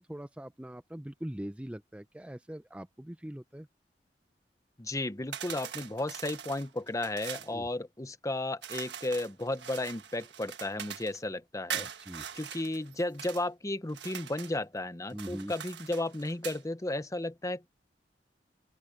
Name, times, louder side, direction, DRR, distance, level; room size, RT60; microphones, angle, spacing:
voice 1, 0.0-3.7 7.5-7.7 11.7-12.3 15.1-15.5, equal, 5° right, 0.6 m, -42 dB
voice 2, 4.8-11.9 12.3-17.7, left 2 dB, 20° left, 0.8 m, -34 dB
sound 1, 5.3-7.5 8.6-11.2 11.7-13.4 13.9-14.6 15.1-16.6, right 9 dB, 75° right, 1.4 m, -42 dB
open air
head